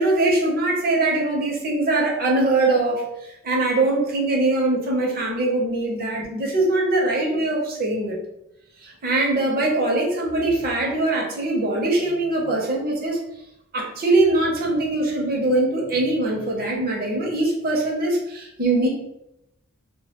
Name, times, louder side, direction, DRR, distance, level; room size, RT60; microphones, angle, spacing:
voice 1, 0.0-8.2 8.8-13.2 13.7-18.9, right 2 dB, 45° right, -1 dB, 0.6 m, -22 dB
2.2 x 2.1 x 2.8 m, 0.84 s
head